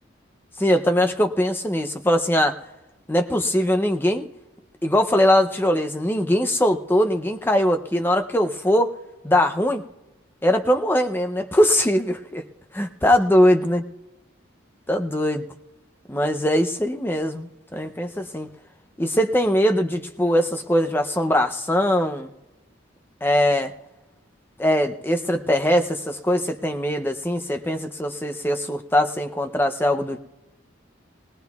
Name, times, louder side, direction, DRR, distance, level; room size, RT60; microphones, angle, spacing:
voice 1, 0.6-2.6 3.1-4.3 4.8-8.9 9.2-9.8 10.4-12.4 12.7-13.8 14.9-15.5 16.1-18.5 19.0-22.3 23.2-23.7 24.6-30.2, equal, 10° left, 6 dB, 0.5 m, -21 dB
20.0 x 18.0 x 2.3 m, 1.0 s
head